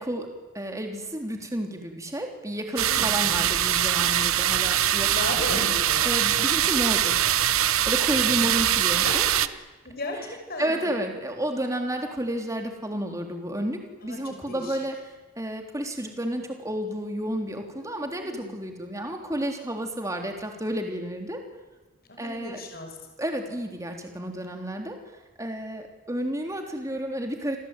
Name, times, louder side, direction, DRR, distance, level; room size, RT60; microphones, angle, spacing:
voice 1, 0.0-5.6 6.0-7.2 7.9-9.5 10.6-15.0 15.4-21.4 22.2-22.6 23.2-25.0 25.4-27.6, right 1 dB, 15° right, 3 dB, 3.5 m, -31 dB
sound 1, 2.8-9.5, right 11 dB, 80° right, 1.0 m, -23 dB
voice 2, 2.9-3.6 5.1-6.0 8.9-9.3 9.8-11.0 14.0-14.8 17.7-18.6 22.1-22.9, left 2 dB, 45° left, 4 dB, 6.0 m, -36 dB
29.0 x 22.0 x 9.2 m, 1.2 s
head